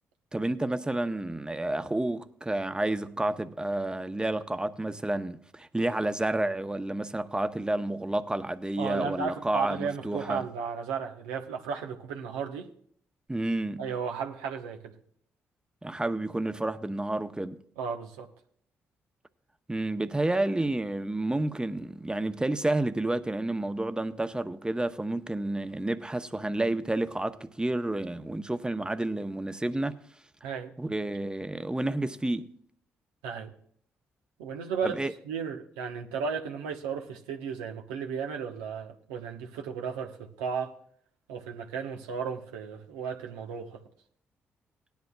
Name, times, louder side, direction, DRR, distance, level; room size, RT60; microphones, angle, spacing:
voice 1, 0.3-10.4 13.3-13.9 15.8-17.6 19.7-30.0 30.8-32.5 34.8-35.1, right 1 dB, 15° right, 0.9 m, -30 dB
voice 2, 8.8-12.7 13.8-14.9 17.8-18.3 30.4-30.7 33.2-33.5 34.4-35.0 35.3-40.7 41.3-43.8, right 6 dB, 90° right, 1.0 m, -34 dB
18.5 x 10.5 x 2.3 m
hypercardioid pair, 45°, 6 cm